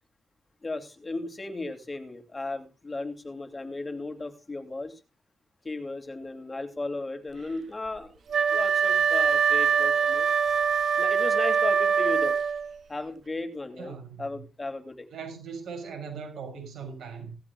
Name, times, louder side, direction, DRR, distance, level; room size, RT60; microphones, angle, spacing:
voice 1, 0.6-5.0 5.6-10.3 11.0-12.3 12.9-15.1, left 2 dB, 25° left, 2.9 m, -35 dB
Wind instrument woodwind instrument, 8.3-12.7, right 6 dB, 65° right, 1.0 m, -23 dB
voice 2, 13.8-14.4 15.1-17.4, right 6 dB, 85° right, 7.3 m, -39 dB
17.5 x 14.5 x 2.4 m
cardioid pair, 115°, 0 cm